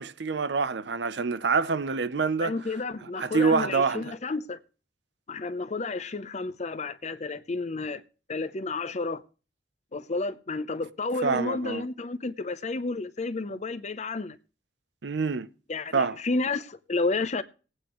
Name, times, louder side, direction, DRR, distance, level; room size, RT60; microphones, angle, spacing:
voice 1, 0.0-2.5 3.2-4.1 11.2-11.8 15.0-15.5 15.9-16.2, right 4 dB, 70° right, 0.6 m, -26 dB
voice 2, 2.4-4.6 5.3-8.0 8.3-9.2 9.9-14.4 15.7-17.4, left 3 dB, 40° left, 0.7 m, -31 dB
20.0 x 9.0 x 3.0 m
head